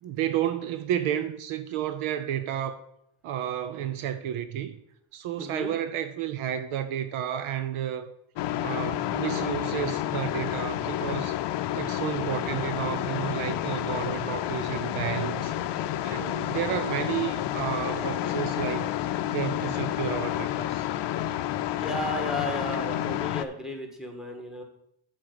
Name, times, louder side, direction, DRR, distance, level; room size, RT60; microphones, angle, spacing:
voice 1, 0.0-2.8 3.2-4.7 5.1-8.1 8.6-11.4 11.7-15.5 16.0-18.9 19.3-20.9, right 10 dB, 75° right, 0.8 m, -31 dB
voice 2, 5.4-5.7 21.8-24.6, left 1 dB, ahead, 1.7 m, -33 dB
sound 1, 8.4-23.4, left 12 dB, 55° left, 0.6 m, -30 dB
7.6 x 4.7 x 6.9 m
cardioid pair, 95°, 50 cm